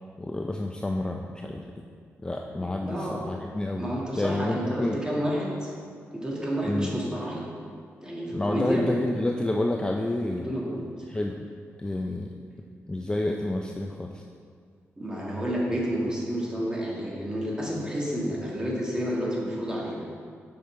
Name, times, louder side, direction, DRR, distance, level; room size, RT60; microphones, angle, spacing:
voice 1, 0.2-1.6 2.2-5.0 6.6-6.9 8.3-10.5 11.1-11.5 11.8-12.3 12.9-14.2, left 1 dB, 15° left, 1 dB, 0.4 m, -29 dB
voice 2, 2.6-3.2 3.8-5.7 6.1-7.4 8.0-8.8 10.4-10.8 15.0-20.0, equal, 15° right, -4 dB, 1.8 m, -30 dB
6.6 x 5.2 x 4.5 m, 2.1 s
cardioid pair, 80°, 5 cm